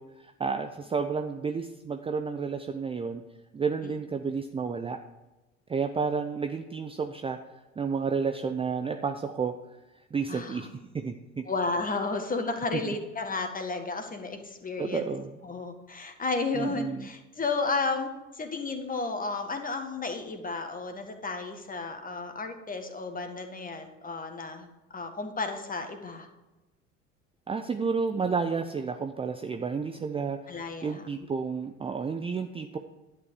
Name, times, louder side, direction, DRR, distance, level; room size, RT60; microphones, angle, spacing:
voice 1, 0.0-3.2 3.5-5.0 5.7-7.4 7.8-9.5 10.1-11.4 12.7-12.9 14.8-15.3 16.5-17.1 27.5-32.8, right 5 dB, 15° right, 6 dB, 0.6 m, -31 dB
voice 2, 10.3-10.6 11.5-15.1 15.4-24.7 24.9-26.3 30.5-31.1, left 3 dB, 20° left, 6 dB, 1.8 m, -33 dB
11.0 x 9.0 x 4.8 m, 1.1 s
figure-of-eight pair, 65°, 38 cm